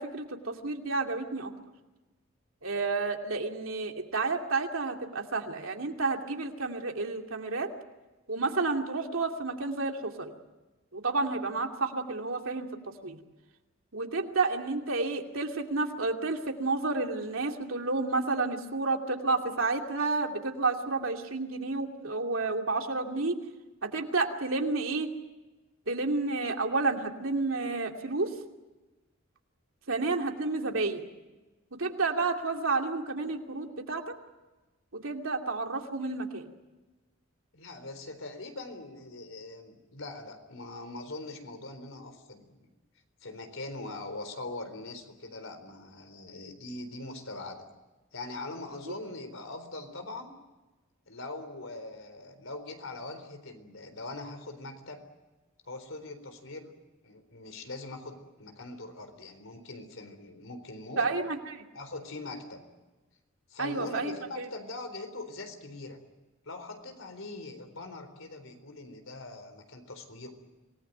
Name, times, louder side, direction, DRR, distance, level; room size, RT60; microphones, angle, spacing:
voice 1, 0.0-1.5 2.6-7.7 8.3-10.3 10.9-13.2 13.9-23.4 23.8-25.1 25.9-28.3 29.9-31.0 31.7-34.0 35.0-36.5 48.9-49.0 61.0-61.6 63.6-64.5, right 3 dB, 80° right, 3 dB, 2.7 m, -30 dB
voice 2, 37.5-42.6 43.2-47.6 48.1-50.3 51.1-55.0 55.6-56.7 57.0-61.1 61.7-62.6 63.5-66.0 66.4-70.3, left 2 dB, 75° left, 8 dB, 4.0 m, -42 dB
26.5 x 19.5 x 9.3 m, 1.1 s
head